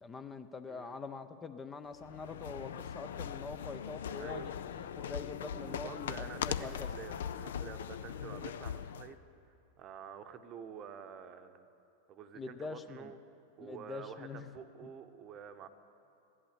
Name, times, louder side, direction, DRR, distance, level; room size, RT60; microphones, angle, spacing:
voice 1, 0.0-6.9 12.3-13.1 13.6-14.5, left 4 dB, 20° left, 10 dB, 0.6 m, -44 dB
voice 2, 0.7-1.0 4.2-4.5 5.5-9.2 9.8-11.7 12.1-13.2 13.6-15.7, right 7 dB, 35° right, 9 dB, 0.9 m, -48 dB
sound 1, 1.9-9.1, left 8 dB, 60° left, 0.5 m, -40 dB
15.0 x 11.5 x 6.8 m, 2.7 s
figure-of-eight pair, 90°, 0 cm